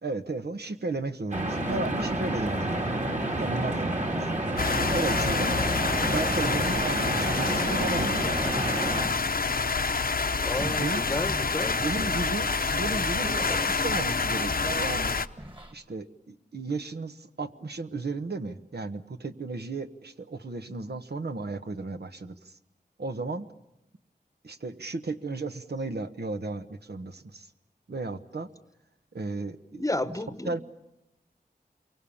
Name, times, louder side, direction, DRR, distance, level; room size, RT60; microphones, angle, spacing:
voice 1, 0.0-2.9 3.4-4.2 4.6-5.5 6.1-8.2 10.5-11.2 11.7-15.1 15.7-22.6 23.0-23.5 24.4-27.5 27.9-28.5 29.1-29.9 30.4-30.6, right 3 dB, 75° right, 1.2 m, -34 dB
sound 1, 1.3-9.1, right 1 dB, 45° right, 3.6 m, -29 dB
sound 2, 4.6-15.3, left 4 dB, 60° left, 0.8 m, -27 dB
voice 2, 10.4-12.1 29.8-30.6, left 1 dB, 20° left, 1.0 m, -32 dB
sound 3, 10.5-15.7, right 1 dB, 30° right, 2.5 m, -42 dB
28.0 x 23.5 x 7.2 m
wide cardioid pair, 70°, 17 cm